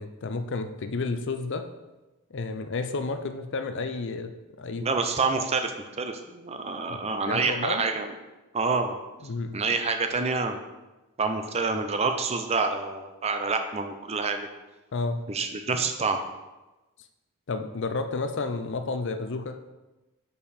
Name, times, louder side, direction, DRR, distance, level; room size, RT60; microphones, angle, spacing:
voice 1, 0.0-1.7 2.3-4.3 4.6-4.9 6.9-7.0 7.3-7.8 9.2-9.6 14.9-15.2 17.5-19.6, left 3 dB, 55° left, 8 dB, 0.5 m, -31 dB
voice 2, 4.8-5.7 6.0-8.1 8.5-9.0 9.5-10.6 11.2-14.5 15.3-16.2, right 4 dB, 30° right, 6 dB, 0.6 m, -27 dB
6.8 x 5.4 x 4.3 m, 1.1 s
head